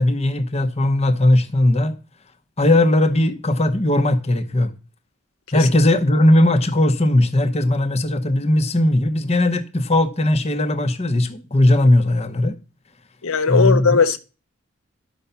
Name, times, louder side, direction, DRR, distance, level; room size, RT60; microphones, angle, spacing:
voice 1, 0.0-1.9 2.6-4.7 5.5-12.6 13.5-14.0, left 1 dB, 30° left, 0.9 m, -18 dB
voice 2, 13.2-14.2, left 5 dB, 85° left, 1.0 m, -17 dB
11.5 x 5.7 x 6.9 m
head